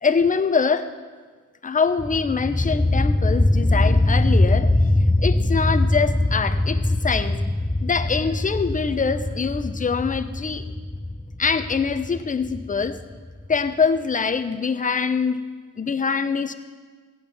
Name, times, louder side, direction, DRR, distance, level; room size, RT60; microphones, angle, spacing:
voice 1, 0.0-0.9 1.6-4.7 5.2-7.4 7.8-10.6 11.4-13.0 13.5-15.4 15.8-16.5, left 5 dB, 25° left, 8 dB, 0.8 m, -24 dB
sound 1, 2.0-13.6, left 2 dB, 5° left, 0.3 m, -22 dB
15.5 x 9.0 x 6.2 m, 1.4 s
cardioid pair, 95°, 31 cm